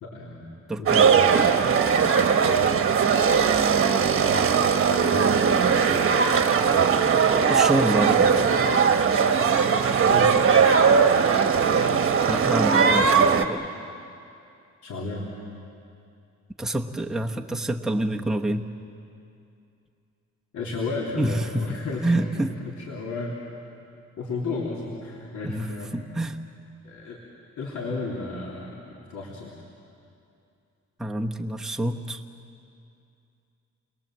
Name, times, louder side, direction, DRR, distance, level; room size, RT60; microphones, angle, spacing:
voice 1, 0.0-0.5 0.8-1.6 2.2-2.8 4.2-5.5 10.0-10.4 14.8-15.3 20.5-23.4 24.2-25.9 26.8-27.2 27.6-29.5, left 3 dB, 80° left, -3 dB, 3.3 m, -34 dB
voice 2, 0.7-1.1 7.5-8.5 12.3-13.6 16.6-18.6 21.2-22.6 25.4-26.4 31.0-32.2, right 1 dB, ahead, 1 dB, 1.0 m, -27 dB
sound 1, 0.9-13.4, right 6 dB, 50° right, 1.4 m, -19 dB
29.5 x 21.5 x 7.6 m, 2.5 s
cardioid pair, 115°, 29 cm